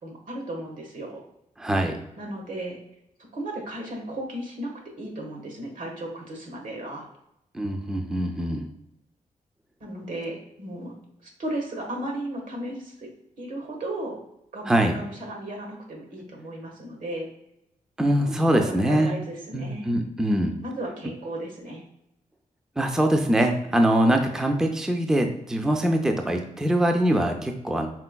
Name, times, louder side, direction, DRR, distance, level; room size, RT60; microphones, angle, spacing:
voice 1, 0.0-1.2 2.2-2.8 3.3-7.1 9.8-11.0 11.4-13.1 13.4-14.2 14.5-17.3 18.1-19.9 20.6-21.8, right 1 dB, 70° right, 1 dB, 1.3 m, -35 dB
voice 2, 1.6-2.0 7.5-8.7 14.6-14.9 18.0-19.1 19.5-20.5 22.8-27.9, right 1 dB, 5° right, 4 dB, 0.4 m, -23 dB
4.4 x 3.7 x 2.2 m, 0.83 s
wide cardioid pair, 145°, 14 cm